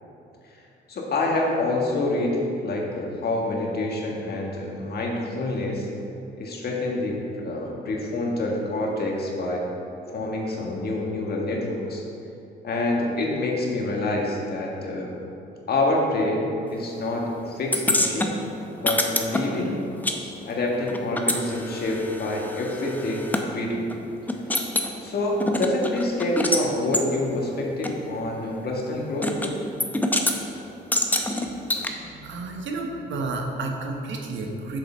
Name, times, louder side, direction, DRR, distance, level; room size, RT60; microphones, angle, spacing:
voice 1, 0.9-5.9 6.4-9.6 10.1-12.0 12.6-15.2 15.7-18.3 18.8-19.8 20.4-23.9 25.0-29.6, left 2 dB, 55° left, -1 dB, 1.6 m, -27 dB
sound 1, 17.7-20.2 20.4-23.4 23.9-24.0 24.3-24.9 25.4-26.6 26.9-27.1 27.8-27.9 29.2-29.5 29.8-30.4 30.9-31.9, left 1 dB, 10° left, 0.7 m, -26 dB
voice 2, 32.2-34.8, right 3 dB, 70° right, 2 dB, 1.1 m, -31 dB
6.9 x 6.5 x 4.4 m, 2.7 s
cardioid pair, 90°, 20 cm